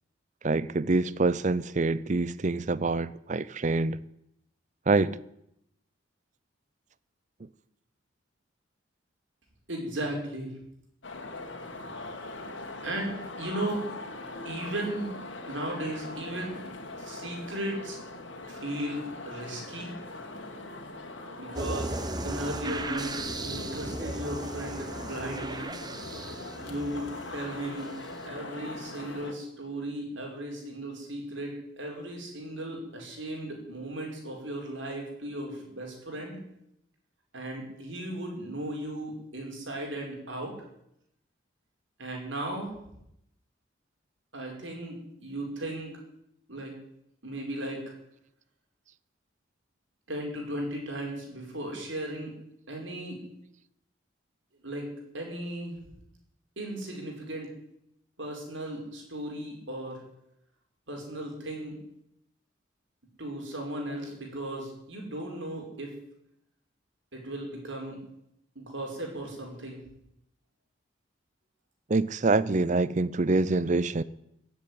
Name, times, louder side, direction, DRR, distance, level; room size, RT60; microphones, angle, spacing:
voice 1, 0.4-4.0 4.9-5.2 71.9-74.0, right 3 dB, 40° right, 0.6 m, -26 dB
voice 2, 9.7-10.6 12.8-13.9 14.5-15.1 15.5-16.6 17.0-18.0 18.5-19.9 21.4-22.0 22.2-25.7 26.6-27.9 28.2-36.4 37.3-40.6 42.0-42.8 44.3-45.9 46.5-46.7 47.2-47.9 50.1-52.3 52.7-53.2 54.6-55.8 56.6-57.5 58.2-60.0 60.9-61.8 63.2-65.9 67.1-68.0 68.6-69.9, right 1 dB, 70° right, 5.2 m, -36 dB
sound 1, 11.0-29.3, left 2 dB, 70° left, 2.3 m, -41 dB
sound 2, 21.6-28.1, right 2 dB, 20° right, 1.0 m, -37 dB
15.5 x 8.1 x 9.4 m
head